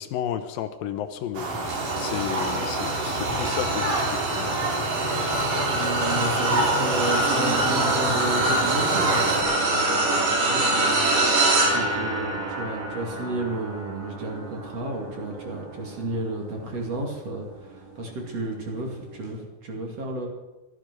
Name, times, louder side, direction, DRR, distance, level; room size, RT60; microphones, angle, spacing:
voice 1, 0.0-4.5, left 10 dB, 75° left, 9 dB, 2.4 m, -33 dB
sound 1, 1.3-9.4, right 2 dB, 65° right, 4.2 m, -27 dB
sound 2, 1.7-17.2 17.7-18.0 19.2-19.3, right 2 dB, 90° right, 4.8 m, -26 dB
voice 2, 5.6-11.2 11.7-20.3, right 2 dB, 45° right, 1 dB, 3.4 m, -32 dB
15.0 x 13.0 x 6.1 m, 1.0 s
omnidirectional pair, 4.2 m